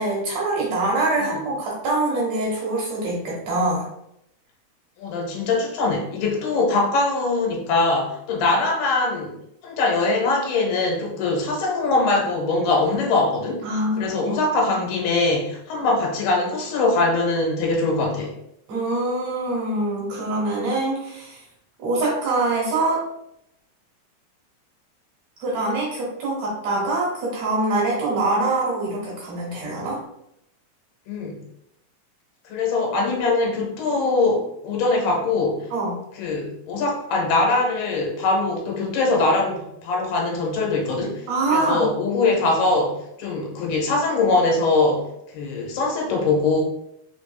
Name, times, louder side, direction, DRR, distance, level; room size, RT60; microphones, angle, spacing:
voice 1, 0.0-3.9 13.6-14.3 14.8-14.9 18.7-21.4 21.8-23.0 25.4-30.0 35.7-36.0 41.3-41.9, right 2 dB, 70° right, -4 dB, 1.6 m, -24 dB
voice 2, 5.0-9.4 9.6-13.7 14.0-18.3 31.1-31.4 32.5-35.7 36.2-41.2 41.5-45.1 45.3-46.6, left 3 dB, 75° left, 0 dB, 2.8 m, -22 dB
5.8 x 3.5 x 2.3 m, 0.79 s
omnidirectional pair, 4.6 m